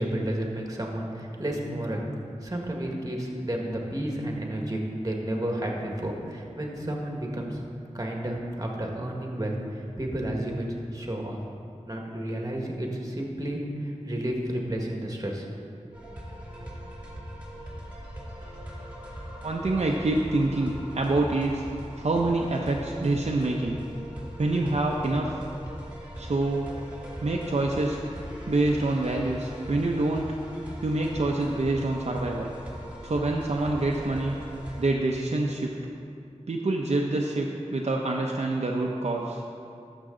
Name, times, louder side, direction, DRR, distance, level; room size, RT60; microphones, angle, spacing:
voice 1, 0.0-2.0 2.4-7.6 7.9-10.7 10.9-11.4 11.8-15.4, right 1 dB, 30° right, 0 dB, 1.6 m, -31 dB
sound 1, 15.9-34.9, equal, 10° right, 2.5 m, -40 dB
voice 2, 19.4-21.6 22.0-23.8 24.4-25.3 26.2-26.7 27.2-28.0 28.5-30.4 30.8-32.5 33.0-34.4 34.8-35.8 36.5-39.4, right 2 dB, 65° right, -1 dB, 0.7 m, -26 dB
12.5 x 7.1 x 3.8 m, 2.5 s
wide cardioid pair, 55°, 12 cm